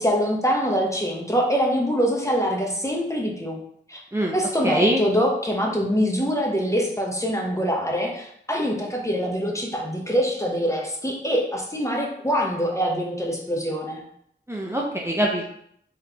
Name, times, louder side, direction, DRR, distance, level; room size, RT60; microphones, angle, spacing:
voice 1, 0.0-3.6 3.9-4.0 4.3-14.0, equal, 15° left, -1 dB, 0.8 m, -24 dB
voice 2, 4.6-5.0 14.5-15.4, right 1 dB, 15° right, -2 dB, 0.5 m, -23 dB
4.0 x 3.1 x 2.8 m, 0.69 s
wide cardioid pair, 50°, 20 cm